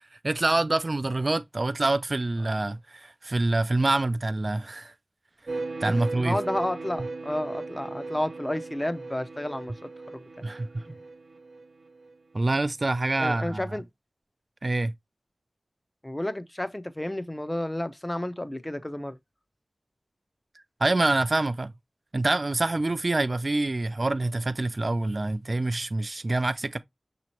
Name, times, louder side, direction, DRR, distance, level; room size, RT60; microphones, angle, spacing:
voice 1, 0.2-4.9 5.8-6.4 10.4-10.7 12.3-13.6 14.6-14.9 20.8-21.7 22.1-26.8, right 2 dB, 45° right, 0.3 m, -26 dB
sound 1, 5.5-12.1, right 3 dB, 80° right, 0.6 m, -37 dB
voice 2, 5.8-9.7 10.1-10.2 10.9-11.0 13.2-13.8 16.0-19.2, left 1 dB, 20° left, 0.6 m, -31 dB
6.0 x 2.9 x 2.9 m
wide cardioid pair, 60°, 0 cm